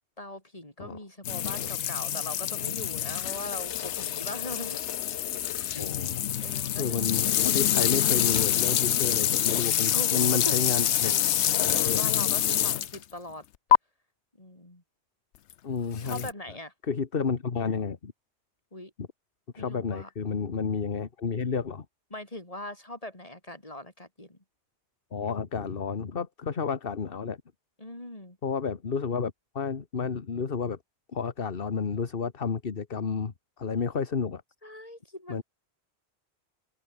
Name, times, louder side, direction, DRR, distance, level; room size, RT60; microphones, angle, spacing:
voice 1, 0.2-4.8 5.7-6.0 6.4-7.7 9.9-10.5 11.0-11.2 11.5-13.5 14.4-14.8 16.0-16.7 18.7-18.9 19.6-20.1 22.1-24.4 27.8-28.4 34.6-35.4, left 1 dB, 30° left, 5.3 m, -41 dB
sound 1, 1.2-13.0 13.7-13.8 16.0-16.3, left 11 dB, 80° left, 1.0 m, -26 dB
voice 2, 5.8-6.2 6.8-11.1 11.8-12.0 15.6-16.3 16.9-18.1 19.0-19.1 19.5-21.8 25.1-27.4 28.4-30.8 31.1-34.4 35.3-35.4, left 5 dB, 55° left, 1.6 m, -31 dB
omnidirectional pair, 1.2 m